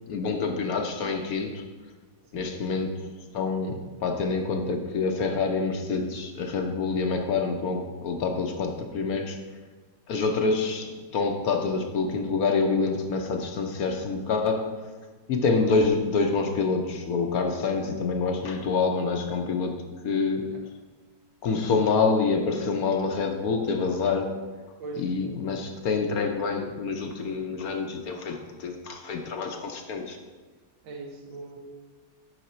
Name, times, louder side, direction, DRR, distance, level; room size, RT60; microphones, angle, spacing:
voice 1, 0.1-1.6 2.3-3.0 3.3-9.4 10.1-14.7 15.3-20.5 21.4-24.3 25.0-30.2, left 4 dB, 60° left, 4 dB, 1.0 m, -27 dB
voice 2, 2.2-2.7 20.5-20.6 24.8-25.2 30.8-31.6, right 3 dB, 80° right, 2 dB, 1.9 m, -40 dB
9.4 x 5.9 x 4.3 m, 1.3 s
omnidirectional pair, 2.1 m